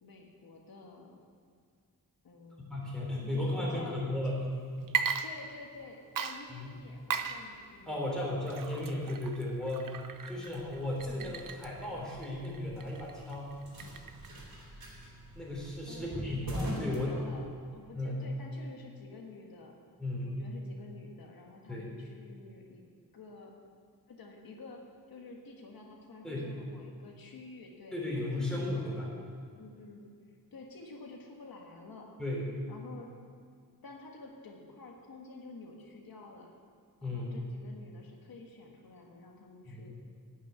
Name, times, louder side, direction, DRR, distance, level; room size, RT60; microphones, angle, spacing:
voice 1, 0.0-1.2 2.2-2.6 3.3-4.0 5.2-8.7 15.9-16.2 16.4-19.7 20.2-22.8 23.1-23.5 24.1-24.8 25.1-28.0 28.3-29.0 29.5-30.1 30.5-32.1 32.7-33.1 33.8-36.5 37.0-39.9, left 3 dB, 85° left, 0 dB, 1.5 m, -50 dB
voice 2, 2.7-5.0 6.5-6.7 7.9-13.5 15.3-17.2 17.9-18.3 20.0-20.5 21.7-21.9 26.2-26.5 27.9-29.1 32.2-32.6 37.0-37.4 39.7-39.9, left 1 dB, ahead, -5 dB, 3.6 m, -35 dB
Water / Liquid, 4.8-5.8 6.2-14.4, right 7 dB, 65° right, 0.7 m, -38 dB
sound 1, 10.5-17.8, right 1 dB, 90° right, 3.0 m, -44 dB
11.0 x 6.6 x 9.0 m, 2.2 s
wide cardioid pair, 140°, 35 cm